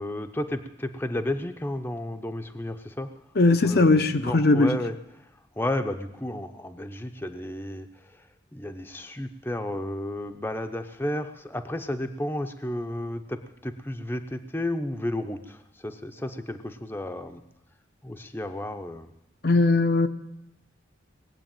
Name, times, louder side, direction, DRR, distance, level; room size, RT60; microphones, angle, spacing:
voice 1, 0.0-3.1 3.6-3.9 4.2-4.9 5.6-8.1 8.5-17.4 18.0-19.1, left 1 dB, 10° left, 0.8 m, -32 dB
voice 2, 3.4-4.8 19.4-20.1, left 2 dB, 55° left, 0.7 m, -19 dB
19.5 x 8.2 x 9.0 m
head